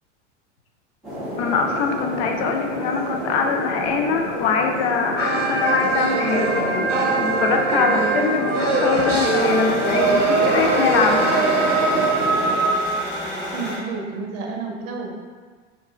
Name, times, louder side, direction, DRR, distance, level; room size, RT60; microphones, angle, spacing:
sound 1, 1.0-12.6, equal, ahead, 1.3 m, -30 dB
voice 1, 1.4-11.2, left 5 dB, 55° left, 3 dB, 0.5 m, -23 dB
sound 2, 5.2-12.8, right 3 dB, 80° right, 0.6 m, -21 dB
sound 3, 9.0-13.8, left 1 dB, 20° left, 1.5 m, -31 dB
voice 2, 13.4-15.1, right 4 dB, 45° right, 0 dB, 0.7 m, -30 dB
4.0 x 2.5 x 2.3 m, 1.5 s
hypercardioid pair, 85°, 37 cm